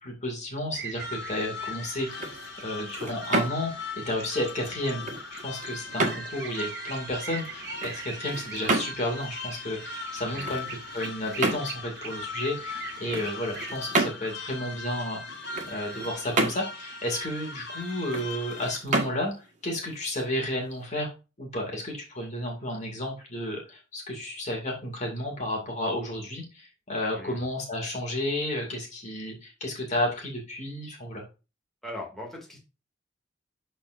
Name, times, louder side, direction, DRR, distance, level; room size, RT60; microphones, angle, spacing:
voice 1, 0.0-2.3 2.6-21.1 21.4-31.2, left 1 dB, 40° left, 0 dB, 2.4 m, -32 dB
sound 1, 0.7-13.8, right 7 dB, 60° right, 1.0 m, -44 dB
sound 2, 1.0-18.8, left 3 dB, 60° left, 1.8 m, -39 dB
sound 3, 2.0-20.8, right 2 dB, 40° right, 1.7 m, -33 dB
voice 2, 27.1-27.4 31.8-32.6, left 1 dB, ahead, -3 dB, 2.4 m, -40 dB
12.0 x 4.4 x 2.6 m, 0.30 s
head